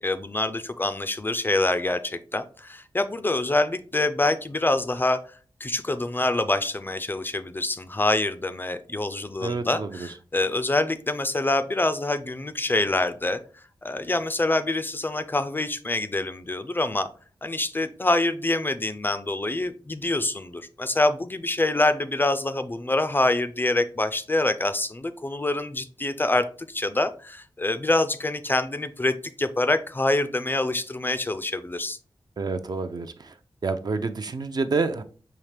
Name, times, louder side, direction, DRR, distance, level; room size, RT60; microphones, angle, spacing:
voice 1, 0.0-5.2 5.6-13.4 13.8-17.1 17.4-32.0, left 2 dB, 25° left, 11 dB, 0.4 m, -26 dB
voice 2, 9.4-10.1 32.4-33.3 33.6-35.0, right 4 dB, 50° right, 9 dB, 0.4 m, -28 dB
5.6 x 2.8 x 3.3 m, 0.40 s
wide cardioid pair, 105°, 9 cm